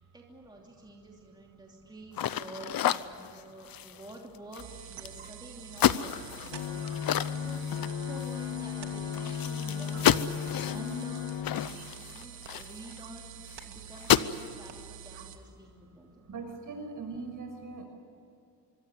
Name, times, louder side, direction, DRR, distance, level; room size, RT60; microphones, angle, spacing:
voice 1, 0.0-6.8 7.1-10.1 10.7-13.3 13.6-16.2, right 2 dB, 10° right, -1 dB, 2.9 m, -49 dB
sound 1, 2.1-5.3 5.7-8.4 8.7-8.8 9.1-13.0 13.5-13.6 13.9-14.5, left 10 dB, 55° left, 0.9 m, -30 dB
sound 2, 4.6-15.4, right 9 dB, 80° right, 2.7 m, -47 dB
sound 3, 6.5-11.7, left 8 dB, 90° left, 2.1 m, -35 dB
voice 2, 16.3-17.9, right 4 dB, 45° right, 5 dB, 5.9 m, -40 dB
25.5 x 24.0 x 8.2 m, 2.6 s
cardioid pair, 145°, 42 cm